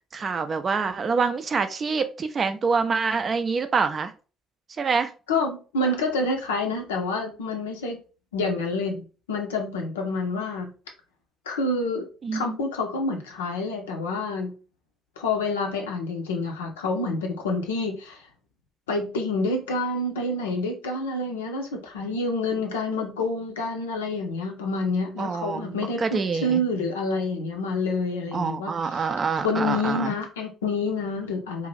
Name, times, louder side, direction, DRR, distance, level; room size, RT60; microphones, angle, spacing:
voice 1, 0.1-4.1 4.8-5.1 12.2-12.6 25.2-26.6 28.3-30.2, right 5 dB, 40° right, 9 dB, 0.4 m, -26 dB
voice 2, 5.3-8.0 8.3-10.7 11.5-12.0 12.3-14.5 15.2-18.2 18.9-29.0 29.4-31.7, left 2 dB, 75° left, 3 dB, 0.5 m, -28 dB
2.6 x 2.4 x 3.1 m, 0.35 s
figure-of-eight pair, 50°, 0 cm